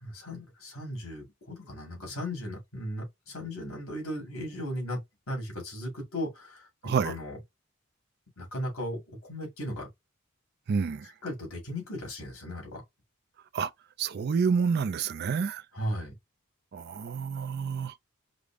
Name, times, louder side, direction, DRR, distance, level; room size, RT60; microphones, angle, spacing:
voice 1, 0.0-5.0 5.3-7.4 8.4-9.9 11.2-12.8 15.7-16.1, equal, 70° left, 2.7 m, -36 dB
voice 2, 6.8-7.2 10.7-11.1 13.5-13.7 14.0-15.6 16.7-17.9, right 6 dB, 50° right, 0.3 m, -28 dB
5.0 x 2.0 x 3.5 m
head